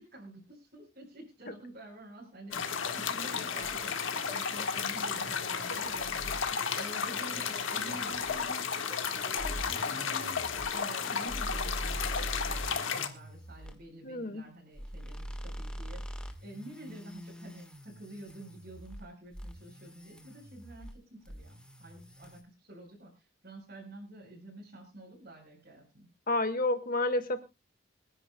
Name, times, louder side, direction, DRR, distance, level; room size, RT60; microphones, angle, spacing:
voice 1, 0.0-6.1 6.8-26.1, right 1 dB, 50° right, -3 dB, 4.6 m, -49 dB
sound 1, 2.5-13.1, left 6 dB, 75° left, 1.6 m, -33 dB
sound 2, 3.6-8.5 9.4-13.8 14.7-19.1 19.3-21.0 21.3-22.4, equal, 5° left, 1.4 m, -44 dB
voice 2, 14.0-14.4 26.3-27.4, left 2 dB, 45° left, 8 dB, 1.6 m, -30 dB
26.0 x 9.9 x 2.2 m, 0.26 s
head